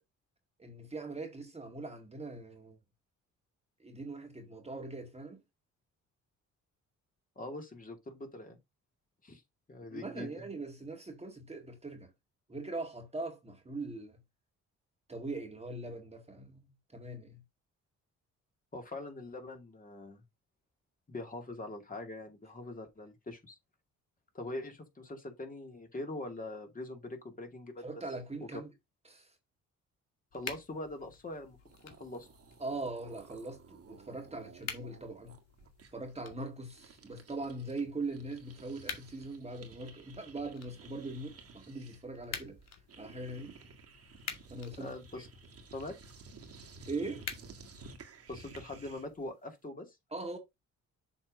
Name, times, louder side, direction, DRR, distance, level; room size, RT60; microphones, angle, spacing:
voice 1, 0.6-2.8 3.8-5.4 9.9-12.1 12.5-14.2 15.1-17.4 27.8-28.7 29.1-29.3 32.6-35.4 35.9-42.6 43.0-43.6 44.5-44.9 46.9-47.3 50.1-50.4, right 2 dB, 20° right, 1.7 m, -41 dB
voice 2, 7.4-8.6 9.2-9.4 9.7-10.3 18.7-20.2 21.1-23.6 24.3-27.8 30.3-31.6 31.8-32.3 44.8-45.3 45.7-46.0 48.3-50.0, left 2 dB, 30° left, 2.4 m, -43 dB
sound 1, 30.3-49.3, left 7 dB, 60° left, 1.7 m, -50 dB
sound 2, 31.3-31.4 31.6-37.8 38.1-49.2, right 4 dB, 50° right, 2.0 m, -54 dB
7.1 x 3.5 x 5.2 m
cardioid pair, 90°, 30 cm